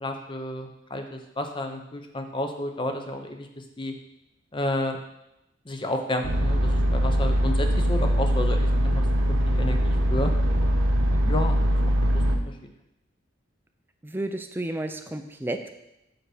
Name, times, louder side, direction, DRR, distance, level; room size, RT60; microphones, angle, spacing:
voice 1, 0.0-3.5 3.8-3.9 4.5-5.0 5.7-8.9 9.5-10.3 11.3-11.6 11.8-12.5, left 1 dB, 25° left, 5 dB, 0.7 m, -31 dB
sound 1, 6.2-12.4, equal, 90° right, 0.9 m, -22 dB
voice 2, 14.0-15.8, right 1 dB, 10° right, 6 dB, 0.4 m, -32 dB
6.1 x 5.2 x 4.8 m, 0.87 s
head